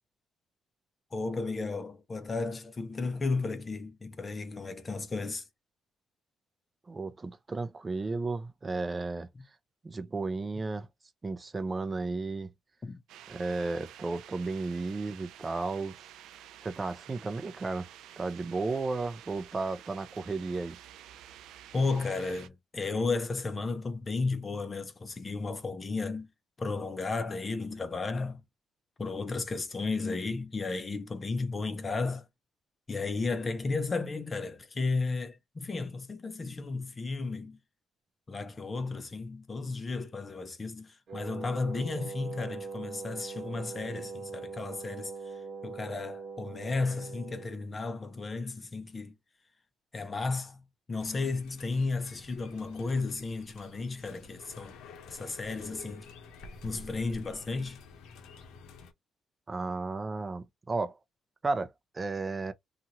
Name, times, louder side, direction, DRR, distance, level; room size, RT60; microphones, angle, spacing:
voice 1, 1.1-5.4 9.4-9.5 12.8-13.0 21.7-26.3 26.6-28.4 29.0-32.2 32.9-37.6 38.3-45.1 45.6-49.1 49.9-54.7 55.1-56.1 56.6-57.8, left 3 dB, 30° left, 0.7 m, -33 dB
voice 2, 6.9-9.3 9.8-10.9 11.2-12.5 13.3-16.0 16.6-17.9 18.2-20.8 59.5-61.0 61.4-62.5, right 3 dB, 25° right, 0.5 m, -33 dB
sound 1, 13.1-22.5, right 11 dB, 85° right, 0.3 m, -51 dB
Wind instrument woodwind instrument, 41.1-47.7, right 4 dB, 55° right, 1.0 m, -42 dB
sound 2, 51.0-58.9, left 4 dB, 85° left, 0.7 m, -50 dB
2.7 x 2.4 x 2.9 m
cardioid pair, 95°, 0 cm